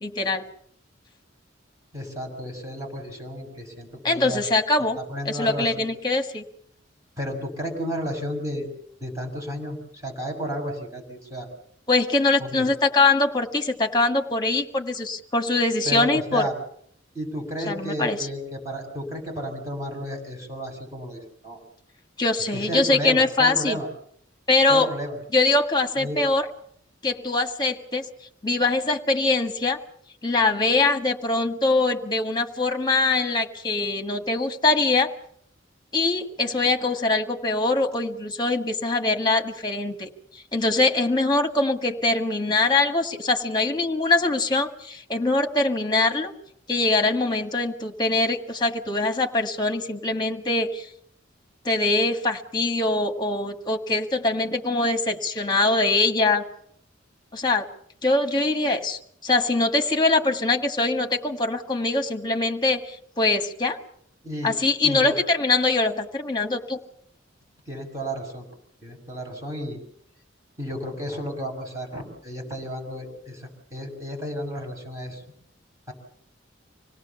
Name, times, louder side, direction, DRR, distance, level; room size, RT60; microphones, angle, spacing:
voice 1, 0.0-0.4 4.0-5.0 5.3-6.4 11.9-16.4 17.7-18.2 22.2-23.8 24.5-24.9 25.3-26.5 27.0-28.1 28.4-29.8 30.2-35.1 35.9-40.1 40.5-46.3 46.7-50.9 51.7-56.4 57.3-57.7 58.0-63.8 64.4-66.8, left 2 dB, 25° left, 6 dB, 1.7 m, -23 dB
voice 2, 1.9-4.4 5.0-5.9 7.2-8.7 9.0-11.5 12.4-12.6 15.8-16.5 17.1-21.6 22.5-23.9 24.7-25.2 26.0-26.2 64.2-64.6 64.8-65.1 67.7-68.5 68.8-69.8 70.6-75.2 75.9-76.0, equal, 15° right, 0 dB, 6.3 m, -32 dB
26.0 x 18.0 x 7.0 m, 0.68 s
head